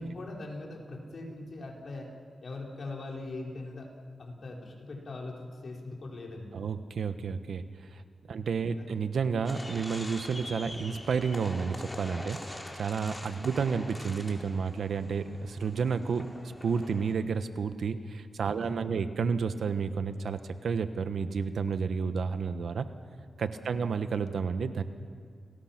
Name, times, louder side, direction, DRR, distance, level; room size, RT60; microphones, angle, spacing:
voice 1, 0.0-2.1 2.4-3.9 4.2-6.5 8.3-8.5 8.8-8.9 18.5-19.0 23.5-23.8, left 2 dB, 60° left, -1 dB, 4.6 m, -41 dB
voice 2, 6.5-7.7 7.9-8.0 8.3-16.3 16.6-22.9 23.4-24.8, right 5 dB, 80° right, 10 dB, 1.2 m, -31 dB
sound 1, 9.4-17.1, left 1 dB, 15° left, 3.9 m, -44 dB
29.5 x 20.0 x 6.0 m, 2.1 s
cardioid pair, 80°, 0 cm